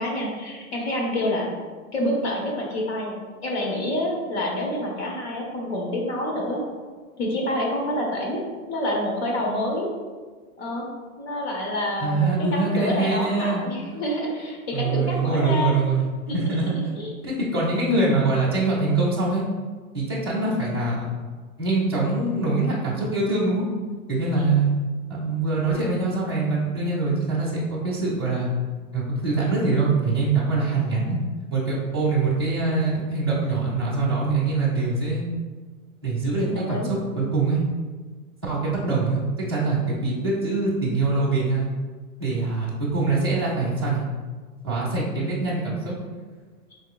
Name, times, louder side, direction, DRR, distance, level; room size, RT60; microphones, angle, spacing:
voice 1, 0.0-1.5 1.9-6.6 7.2-8.4 8.7-9.9 10.6-10.9 11.2-15.8 16.3-17.1 36.4-36.9, left 1 dB, 45° left, -1 dB, 1.0 m, -27 dB
voice 2, 12.0-13.6 14.7-16.9 17.2-19.4 19.9-21.1 21.6-23.6 24.1-24.7 25.1-28.5 28.9-31.2 31.5-35.2 36.0-37.6 38.4-39.2 39.5-41.7 42.2-44.0 44.6-45.9, right 3 dB, 20° right, -10 dB, 0.4 m, -24 dB
5.2 x 3.6 x 2.3 m, 1.4 s
hypercardioid pair, 180°, 43 cm